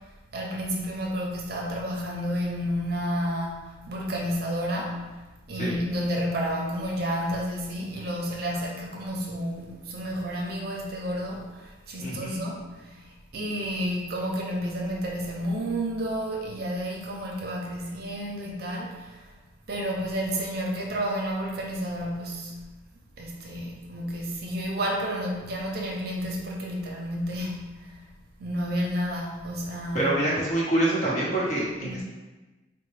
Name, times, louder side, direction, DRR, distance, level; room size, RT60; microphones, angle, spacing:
voice 1, 0.3-5.2 5.5-19.3 19.7-22.6 23.2-28.0 28.4-30.1 31.8-32.0, equal, 55° right, -1 dB, 0.6 m, -31 dB
voice 2, 12.0-12.4 29.9-32.0, right 1 dB, 40° left, -5 dB, 0.9 m, -26 dB
4.2 x 2.1 x 3.2 m, 1.2 s
head